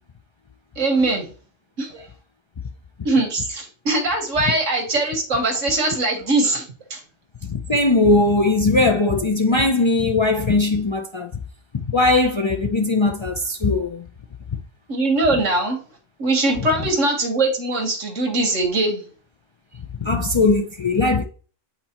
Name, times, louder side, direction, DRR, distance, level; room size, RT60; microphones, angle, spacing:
voice 1, 0.8-1.3 1.8-2.0 3.1-6.7 6.9-7.0 14.9-15.8 16.2-19.0, right 2 dB, 80° right, 1.7 m, -21 dB
voice 2, 7.4-11.3 11.9-14.0 16.8-16.9 20.0-21.2, left 2 dB, 50° left, 0.3 m, -19 dB
8.4 x 4.3 x 2.9 m
omnidirectional pair, 1.3 m